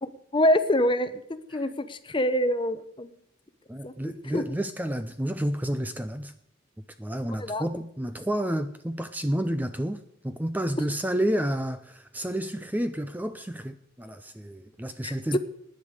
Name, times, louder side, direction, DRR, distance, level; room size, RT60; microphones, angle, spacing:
voice 1, 0.0-3.1 3.8-3.9 4.3-4.4 7.3-7.6 15.0-15.4, left 1 dB, 25° left, 0.8 m, -26 dB
voice 2, 3.7-6.3 7.0-15.4, right 1 dB, 10° right, 0.5 m, -30 dB
18.0 x 9.9 x 5.0 m
head